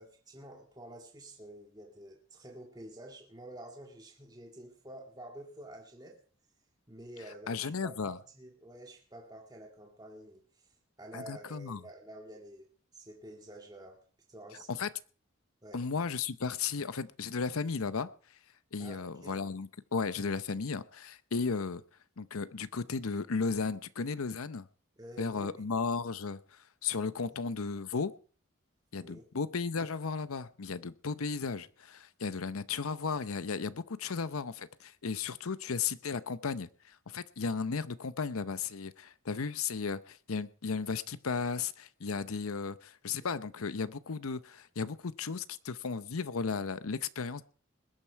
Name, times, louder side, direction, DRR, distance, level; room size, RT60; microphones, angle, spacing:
voice 1, 0.0-6.2 6.9-12.7 12.9-14.0 14.3-14.7 15.6-15.8 18.8-19.4 25.0-25.7 27.3-27.4 29.0-29.3, right 1 dB, 20° right, 2.0 m, -49 dB
voice 2, 7.5-8.2 11.1-11.8 14.7-14.9 15.7-18.1 18.7-21.8 22.2-24.7 25.2-28.1 28.9-47.4, left 5 dB, 85° left, 0.7 m, -35 dB
21.0 x 9.1 x 4.6 m
head